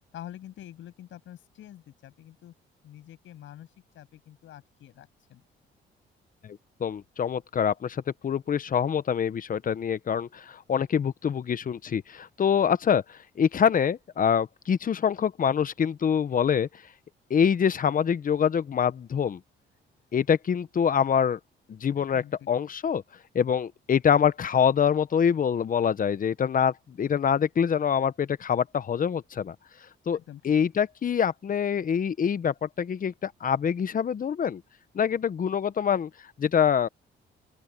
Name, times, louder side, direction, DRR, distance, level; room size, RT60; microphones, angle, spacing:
voice 1, 0.1-2.5 2.8-3.7 3.9-5.4 22.0-22.5 30.1-30.5, left 12 dB, 75° left, 7.1 m, -46 dB
voice 2, 6.4-16.7 17.3-19.4 20.1-21.4 21.7-23.0 23.3-29.5 30.1-30.2 30.4-34.6 34.9-36.1 36.4-36.9, left 7 dB, 45° left, 1.0 m, -25 dB
open air
cardioid pair, 90°, 20 cm